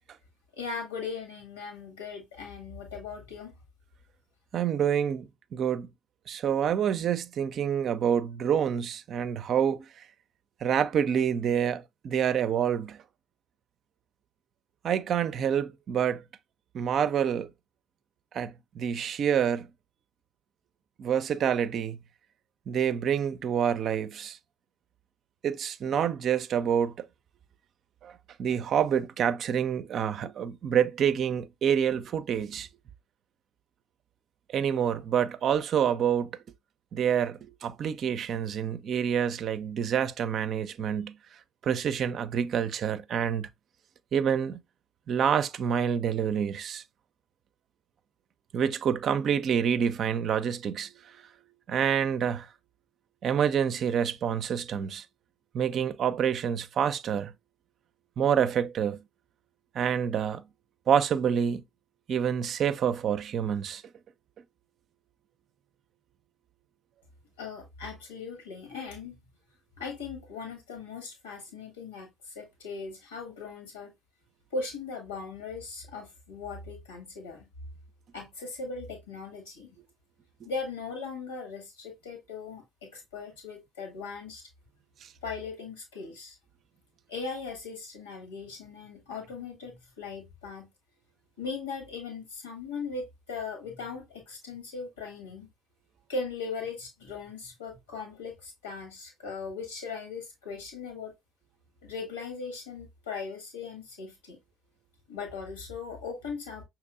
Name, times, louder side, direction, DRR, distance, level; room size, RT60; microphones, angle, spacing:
voice 1, 0.5-3.5 67.4-69.2 69.8-73.9 74.5-77.5 78.1-79.7 80.4-84.4 85.2-86.3 87.1-90.7 91.4-95.5 96.1-101.1 101.8-104.4 105.1-106.6, left 4 dB, 80° left, 1.6 m, -39 dB
voice 2, 4.5-5.9 6.3-9.8 10.6-13.0 14.8-16.2 16.7-17.5 18.3-19.7 21.0-22.0 22.7-24.4 25.4-26.9 28.0-28.1 28.4-32.7 34.5-36.3 36.9-41.2 41.6-43.5 44.1-44.6 45.1-46.8 48.5-50.9 51.7-52.5 53.2-55.0 55.5-57.3 58.2-59.0 59.7-60.4 60.9-61.6 62.1-63.8 85.0-85.1, right 8 dB, 45° right, 0.4 m, -27 dB
5.8 x 2.9 x 2.4 m
figure-of-eight pair, 55°, 0 cm